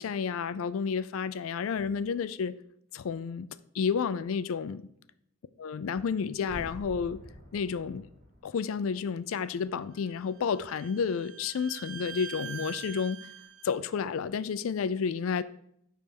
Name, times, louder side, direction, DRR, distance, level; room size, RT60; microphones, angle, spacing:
voice 1, 0.0-2.5 2.9-3.5 3.7-4.9 5.6-7.2 7.5-8.1 8.4-13.2 13.6-15.4, left 6 dB, 70° left, 0.4 m, -31 dB
sound 1, 6.4-9.3 9.7-9.8, left 1 dB, 40° right, 1.9 m, -48 dB
Bowed string instrument, 10.0-13.8, right 7 dB, 85° right, 0.7 m, -44 dB
9.4 x 3.4 x 5.2 m
head